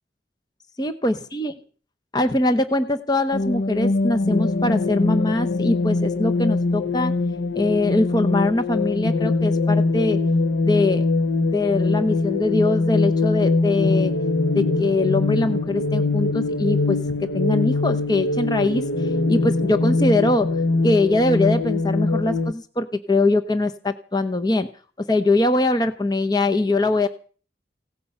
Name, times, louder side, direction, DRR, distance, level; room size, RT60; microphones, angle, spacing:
voice 1, 0.8-1.5 2.1-7.1 7.5-10.2 10.6-11.1 11.5-14.1 14.5-17.0 17.3-18.8 19.3-20.5 20.8-24.7 25.0-27.1, left 2 dB, 20° left, 8 dB, 0.7 m, -22 dB
sound 1, 3.3-22.5, left 3 dB, 80° left, 0.8 m, -22 dB
17.0 x 13.5 x 5.4 m, 0.42 s
head